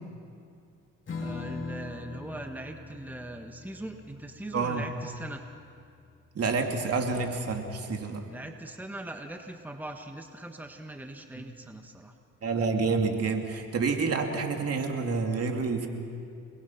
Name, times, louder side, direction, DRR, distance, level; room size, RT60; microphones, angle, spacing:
Strum, 1.1-7.9, left 4 dB, 40° left, 3.3 m, -43 dB
voice 1, 1.2-5.4 8.3-12.1, right 1 dB, 5° right, 4 dB, 1.5 m, -41 dB
voice 2, 4.5-4.8 6.3-8.3 11.4-11.5 12.4-15.9, right 4 dB, 55° right, 3 dB, 2.8 m, -28 dB
28.5 x 21.0 x 6.0 m, 2.4 s
cardioid pair, 90°, 30 cm